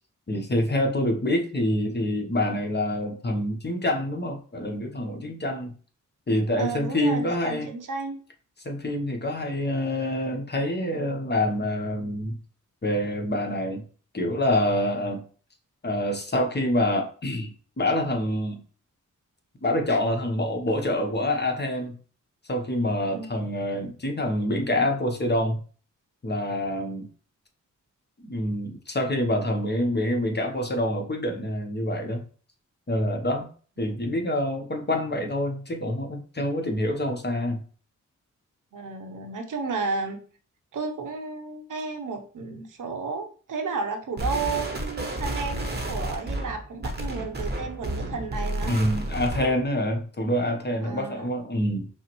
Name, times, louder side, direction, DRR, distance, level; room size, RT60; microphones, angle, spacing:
voice 1, 0.3-5.7 6.3-7.7 8.6-12.4 12.8-13.8 14.1-15.2 15.8-18.6 19.6-22.0 22.5-25.6 26.2-27.1 28.2-32.2 32.9-33.5 33.8-37.6 48.7-51.9, left 1 dB, 30° left, 3 dB, 0.8 m, -26 dB
voice 2, 6.6-8.2 23.1-23.5 33.9-34.0 38.7-40.2 40.7-48.8 50.8-51.3, right 4 dB, 75° right, 4 dB, 0.8 m, -32 dB
sound 1, 44.2-49.6, right 1 dB, 30° right, 0.8 m, -31 dB
5.5 x 2.0 x 3.0 m, 0.40 s
cardioid pair, 65°, 32 cm